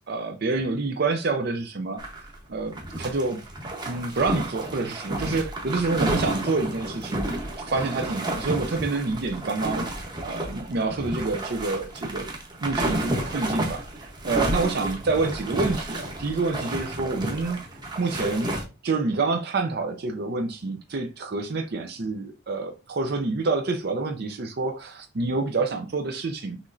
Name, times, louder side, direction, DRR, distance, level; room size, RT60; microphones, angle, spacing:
voice 1, 0.1-2.1 2.5-3.4 3.9-7.3 7.6-12.3 12.6-17.6 18.0-18.5 18.8-26.6, right 3 dB, 50° right, 0.5 m, -27 dB
sound 1, 2.0-2.4 2.7-18.6, right 1 dB, 20° right, 0.9 m, -31 dB
6.1 x 3.1 x 2.5 m
head